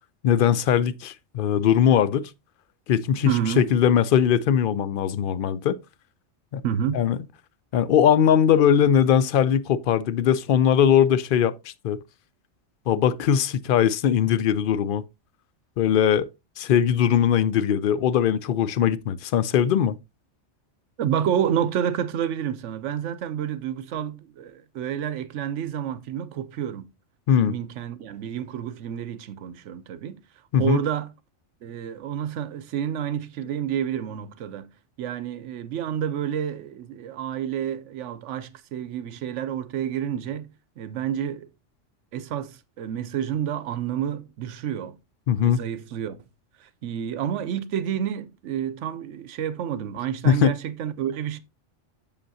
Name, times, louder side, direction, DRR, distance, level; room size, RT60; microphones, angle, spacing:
voice 1, 0.2-2.3 2.9-3.3 3.6-5.8 6.5-6.6 6.9-7.2 7.7-11.5 11.8-12.0 12.9-15.0 15.8-16.3 16.6-20.0 27.3-27.5 30.5-30.8 45.3-45.6 50.2-50.5, left 9 dB, 60° left, 0.6 m, -20 dB
voice 2, 3.3-3.7 6.6-7.0 21.0-26.9 27.4-30.2 30.6-31.1 31.6-34.7 35.0-40.5 40.8-41.5 42.1-45.0 45.4-46.2 46.6-51.4, right 9 dB, 80° right, 0.9 m, -29 dB
7.8 x 6.8 x 2.7 m
omnidirectional pair, 1.3 m